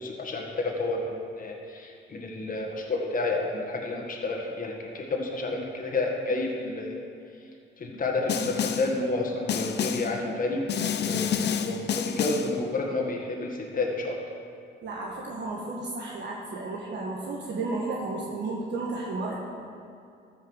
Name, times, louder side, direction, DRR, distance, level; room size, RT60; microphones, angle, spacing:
voice 1, 0.0-7.0 7.8-10.6 10.9-14.2, left 2 dB, 45° left, 0 dB, 1.8 m, -30 dB
Snare drum, 8.3-9.0 9.5-10.2 10.7-12.6, left 8 dB, 60° left, 0.7 m, -28 dB
voice 2, 14.8-19.4, right 3 dB, 60° right, -2 dB, 1.5 m, -33 dB
13.5 x 5.6 x 6.4 m, 2.4 s
cardioid pair, 90°, 20 cm